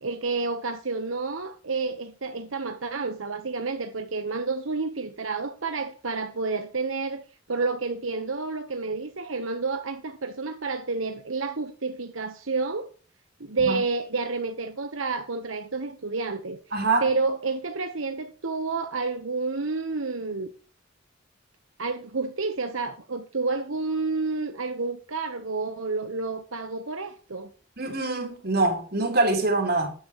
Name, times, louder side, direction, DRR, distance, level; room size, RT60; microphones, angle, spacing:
voice 1, 0.0-7.2 7.5-12.9 13.4-16.6 17.0-20.5 21.8-27.5, right 3 dB, 85° right, 1.2 m, -30 dB
voice 2, 16.7-17.1 27.8-29.9, right 2 dB, 50° right, 3.5 m, -24 dB
13.0 x 10.0 x 3.1 m
head